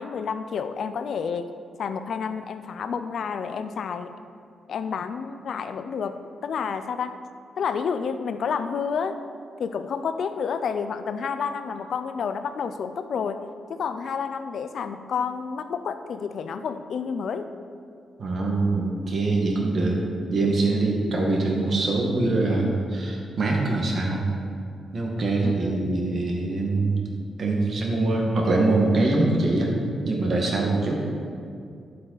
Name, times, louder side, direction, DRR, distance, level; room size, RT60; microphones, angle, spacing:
voice 1, 0.0-1.5 1.8-4.1 4.7-7.2 7.6-9.2 9.6-13.4 13.7-17.5 25.4-25.9, left 6 dB, 60° left, 10 dB, 0.5 m, -30 dB
voice 2, 18.2-24.2 24.9-26.9 27.4-29.7 30.0-31.0, right 2 dB, 45° right, -1 dB, 1.7 m, -23 dB
12.0 x 7.4 x 4.0 m, 2.3 s
wide cardioid pair, 165°, 0 cm